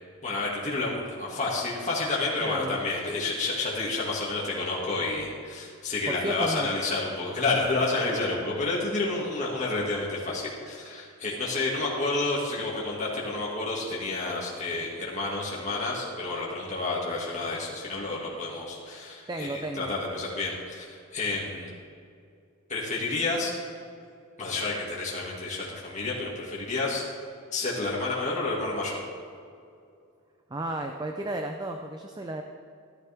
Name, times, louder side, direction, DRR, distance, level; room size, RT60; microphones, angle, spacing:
voice 1, 0.2-21.7 22.7-23.5 24.4-27.0 27.5-29.0, left 3 dB, 35° left, -5 dB, 2.1 m, -30 dB
voice 2, 2.4-2.8 6.1-6.7 19.3-19.9 30.5-32.4, right 1 dB, 20° right, 4 dB, 0.5 m, -33 dB
14.0 x 13.0 x 3.5 m, 2.4 s
head